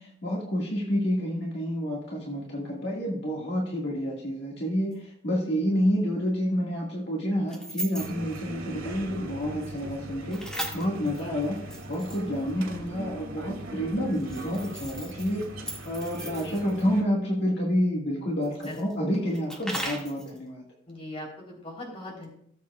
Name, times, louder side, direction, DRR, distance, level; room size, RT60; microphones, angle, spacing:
voice 1, 0.0-15.5 15.8-20.6, equal, 60° left, -3 dB, 1.9 m, -29 dB
sound 1, 4.9-5.0 7.5-8.4 10.3-12.5 14.1-16.8 18.4-20.4, right 1 dB, 5° left, 1.9 m, -38 dB
sound 2, 8.0-17.0, right 1 dB, 90° right, 2.7 m, -40 dB
voice 2, 20.9-22.3, left 1 dB, 30° left, -2 dB, 3.5 m, -40 dB
18.5 x 7.6 x 2.4 m, 0.69 s
head